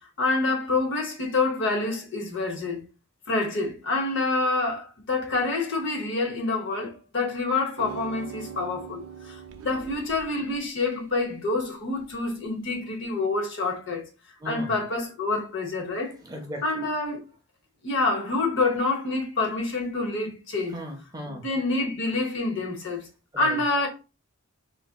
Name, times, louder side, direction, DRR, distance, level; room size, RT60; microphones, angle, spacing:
voice 1, 0.2-2.8 3.3-14.1 14.4-16.1 16.6-17.2 17.8-20.8 21.4-23.1 23.4-23.9, left 3 dB, 55° left, 0.8 m, -27 dB
sound 1, 7.8-10.6 12.0-12.1, right 6 dB, 75° right, 0.4 m, -41 dB
voice 2, 14.4-14.7 16.2-16.9 20.7-21.4 23.3-23.6, equal, 15° right, 0.4 m, -37 dB
3.9 x 2.5 x 2.2 m
head